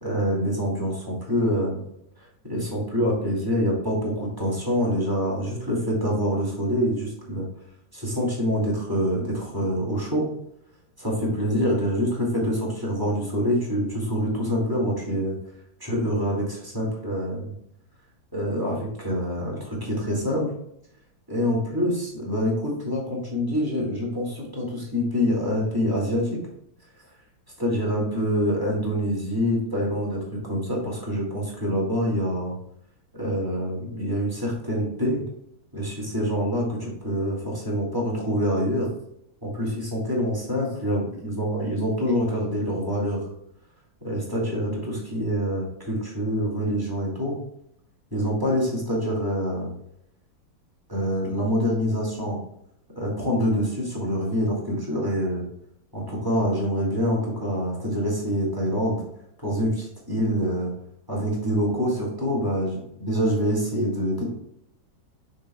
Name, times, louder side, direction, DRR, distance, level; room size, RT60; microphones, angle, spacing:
voice 1, 0.0-1.8 2.2-7.5 7.9-10.3 11.0-15.3 15.8-17.5 18.3-20.5 21.3-26.4 27.6-32.5 33.1-35.2 35.7-38.9 39.4-43.3 44.0-47.4 48.1-49.7 50.9-52.4 53.0-55.4 55.9-59.0 59.4-60.7 61.1-64.2, equal, 10° right, -4 dB, 2.3 m, -26 dB
7.1 x 6.3 x 2.3 m, 0.76 s
omnidirectional pair, 2.0 m